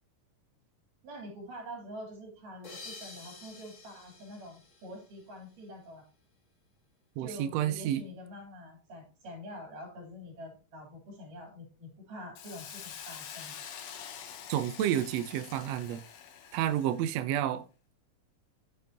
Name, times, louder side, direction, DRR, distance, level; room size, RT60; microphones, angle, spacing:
voice 1, 1.0-6.0 7.2-13.6, equal, 75° right, 4.6 m, -46 dB
sound 1, 2.6-5.7, left 3 dB, 40° left, 1.1 m, -50 dB
voice 2, 7.2-8.0 14.5-16.0 16.5-17.6, right 11 dB, 90° right, 1.4 m, -30 dB
Hiss, 12.4-17.1, left 8 dB, 65° left, 1.8 m, -46 dB
11.0 x 6.8 x 2.8 m
omnidirectional pair, 3.9 m